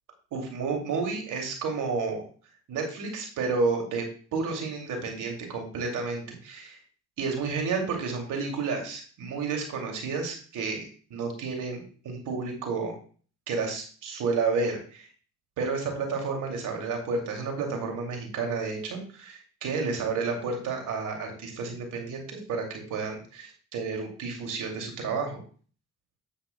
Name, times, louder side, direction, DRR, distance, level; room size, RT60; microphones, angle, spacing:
voice 1, 0.3-2.2 2.7-4.1 4.3-6.8 7.2-12.9 13.5-15.1 15.6-25.4, right 4 dB, 75° right, 2 dB, 2.6 m, -31 dB
9.8 x 8.9 x 2.2 m, 0.41 s
hypercardioid pair, 50°, 32 cm